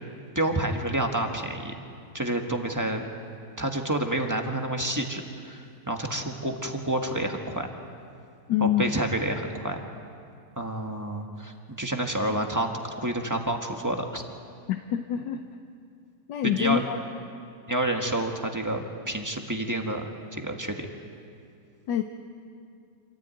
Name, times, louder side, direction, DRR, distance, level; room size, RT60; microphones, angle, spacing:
voice 1, 0.3-1.7 2.1-3.1 3.6-7.7 8.6-9.8 10.6-14.2 16.4-16.8 17.7-20.0 20.3-20.9, right 1 dB, 10° right, 3 dB, 1.4 m, -29 dB
voice 2, 8.5-9.0 14.9-15.4 16.3-17.0 21.9-22.0, left 10 dB, 80° left, 6 dB, 1.4 m, -25 dB
26.5 x 14.0 x 9.1 m, 2.4 s
omnidirectional pair, 1.9 m